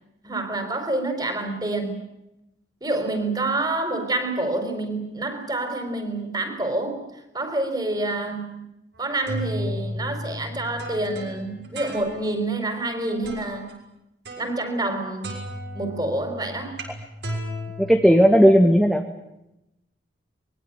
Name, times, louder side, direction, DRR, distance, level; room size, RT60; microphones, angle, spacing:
voice 1, 0.2-2.0 2.8-7.0 7.3-8.6 9.0-13.7 14.4-15.4 15.7-16.8, right 2 dB, 20° right, 7 dB, 4.7 m, -27 dB
sound 1, 9.0-12.5 13.2-13.7 14.3-15.0 15.2-18.7, equal, 65° right, 6.5 m, -35 dB
voice 2, 17.8-19.0, equal, ahead, 3 dB, 1.7 m, -15 dB
24.5 x 22.0 x 9.1 m, 0.88 s
head